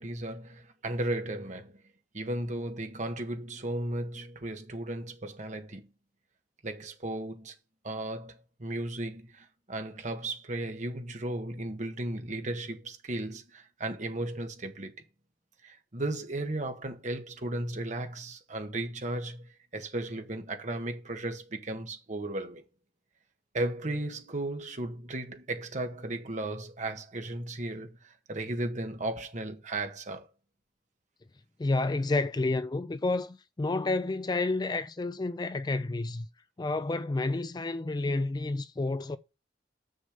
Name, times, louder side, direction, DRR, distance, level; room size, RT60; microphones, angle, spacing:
voice 1, 0.0-1.8 2.1-5.9 6.6-7.5 7.8-14.9 15.6-22.6 23.5-30.3, right 1 dB, 45° right, 1.5 m, -35 dB
voice 2, 31.6-36.3 36.6-39.2, left 2 dB, 25° left, 0.4 m, -30 dB
6.8 x 6.4 x 6.8 m
head